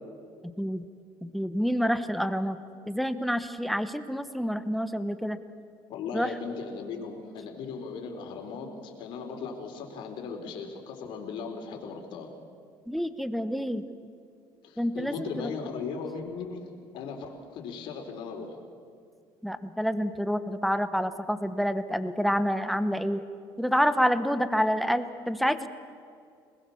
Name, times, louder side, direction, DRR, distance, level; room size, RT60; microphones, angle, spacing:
voice 1, 1.2-2.6 2.9-5.4 6.1-6.3 12.9-13.8 14.8-15.3 19.4-23.2 23.6-25.7, equal, ahead, 11 dB, 1.1 m, -28 dB
voice 2, 5.9-12.3 14.6-16.7 16.9-18.6, left 5 dB, 70° left, 3 dB, 4.0 m, -37 dB
27.0 x 20.0 x 7.2 m, 2.3 s
cardioid pair, 110°, 9 cm